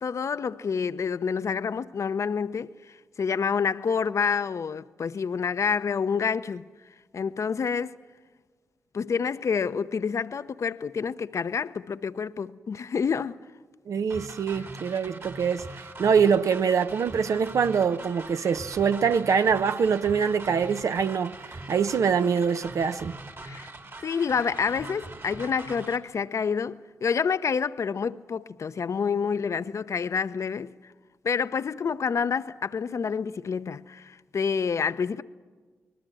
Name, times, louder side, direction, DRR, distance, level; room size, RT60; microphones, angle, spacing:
voice 1, 0.0-6.7 7.1-8.0 8.9-13.4 23.4-23.7 24.0-30.9 31.2-35.2, left 6 dB, 60° left, 0.7 m, -28 dB
voice 2, 13.9-23.1, right 6 dB, 70° right, 0.7 m, -24 dB
sound 1, 14.1-26.0, right 2 dB, 50° right, 2.7 m, -42 dB
23.0 x 19.5 x 7.8 m
supercardioid pair, 40°, 6 cm